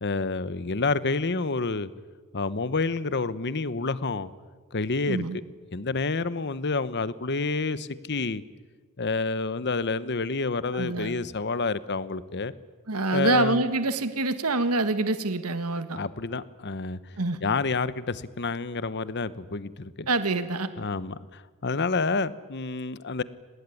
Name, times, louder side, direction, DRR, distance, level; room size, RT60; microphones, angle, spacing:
voice 1, 0.0-1.9 2.3-4.3 4.7-5.2 5.7-8.4 9.0-12.5 13.1-13.6 15.9-17.0 17.4-20.1 20.8-23.2, left 3 dB, 50° left, 16 dB, 1.0 m, -28 dB
voice 2, 5.1-5.4 10.7-11.1 12.9-16.0 17.2-17.4 20.1-20.7, right 2 dB, 85° right, 11 dB, 1.6 m, -26 dB
25.5 x 19.0 x 9.9 m, 1.4 s
head